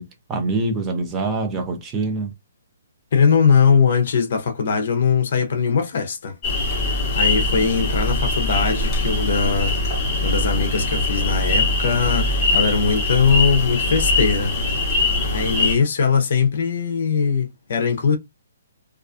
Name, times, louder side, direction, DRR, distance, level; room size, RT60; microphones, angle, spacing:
voice 1, 0.0-2.3, right 2 dB, 15° right, 0.5 m, -25 dB
voice 2, 3.1-6.4 7.1-9.8 10.2-14.5 15.3-18.2, left 6 dB, 55° left, 0.6 m, -20 dB
sound 1, 6.4-15.7, left 2 dB, 15° left, 1.0 m, -22 dB
2.3 x 2.3 x 2.4 m
hypercardioid pair, 165°, 0 cm